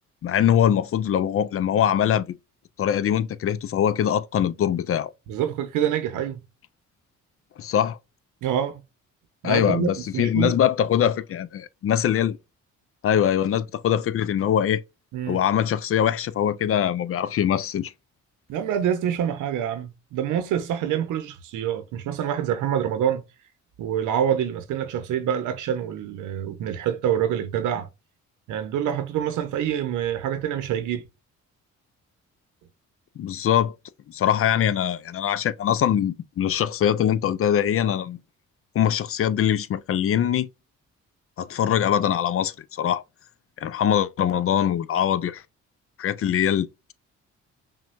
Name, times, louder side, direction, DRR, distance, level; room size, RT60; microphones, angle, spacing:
voice 1, 0.2-2.3 2.8-5.1 7.6-8.0 9.4-12.4 13.0-14.8 15.3-17.9 33.2-33.7 34.1-38.2 38.7-40.5 41.4-43.0 43.6-45.4 46.0-46.9, left 9 dB, 50° left, 0.5 m, -23 dB
voice 2, 5.3-6.4 8.4-8.8 9.4-10.6 15.1-15.4 18.5-23.2 23.8-27.9 28.5-31.0, right 9 dB, 90° right, 0.9 m, -26 dB
5.8 x 2.3 x 2.6 m
cardioid pair, 90°, 30 cm